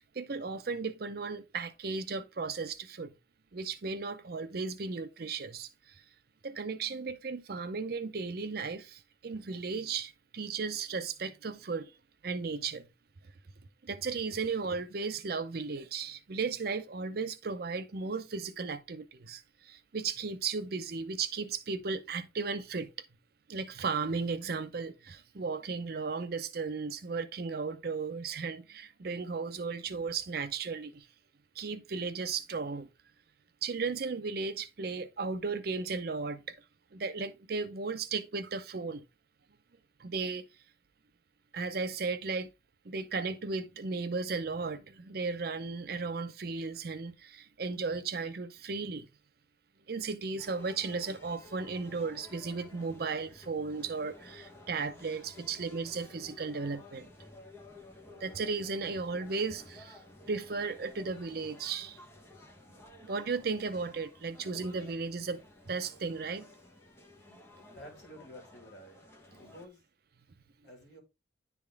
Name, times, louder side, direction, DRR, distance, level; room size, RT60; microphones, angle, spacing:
voice 1, 0.0-3.1 3.5-6.0 6.4-11.9 12.2-12.9 13.8-22.9 23.5-31.1 31.6-32.9 33.6-36.6 36.9-39.0 40.0-40.4 41.5-42.5 42.8-49.1 49.9-57.1 58.2-60.0 60.3-62.0 63.0-65.4 65.7-66.5, right 4 dB, 55° right, 0.6 m, -35 dB
sound 1, 50.4-69.7, left 2 dB, 15° left, 1.0 m, -54 dB
voice 2, 67.8-69.0 69.4-69.8 70.6-71.0, equal, 65° left, 2.0 m, -50 dB
10.5 x 3.5 x 3.4 m
head